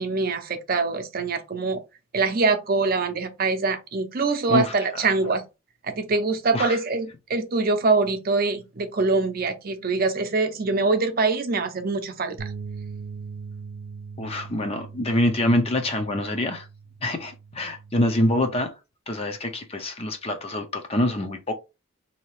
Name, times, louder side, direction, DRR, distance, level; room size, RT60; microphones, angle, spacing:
voice 1, 0.0-1.8 2.1-5.4 5.8-12.5, right 3 dB, 45° right, 0.6 m, -24 dB
sound 1, 12.4-18.6, right 5 dB, 85° right, 0.6 m, -40 dB
voice 2, 14.2-16.6 17.0-18.7 19.1-21.5, left 1 dB, 30° left, 0.5 m, -25 dB
4.0 x 2.8 x 3.0 m
head